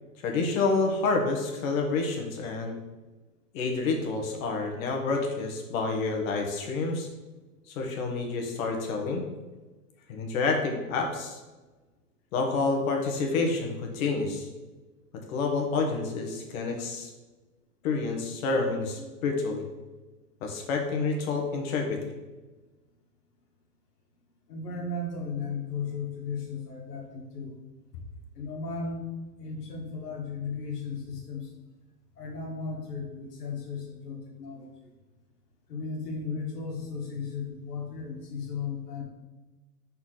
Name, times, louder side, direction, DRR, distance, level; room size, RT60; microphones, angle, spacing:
voice 1, 0.2-2.8 3.5-7.1 7.7-9.2 10.1-11.4 12.3-14.5 15.3-17.1 17.8-19.6 20.4-22.0, left 3 dB, 60° left, 2 dB, 1.5 m, -28 dB
voice 2, 24.5-27.6 28.4-29.1 29.4-31.5 32.2-34.7 35.7-39.0, left 4 dB, 80° left, 0 dB, 2.0 m, -35 dB
5.8 x 4.3 x 4.0 m, 1.2 s
hypercardioid pair, 125°, 47 cm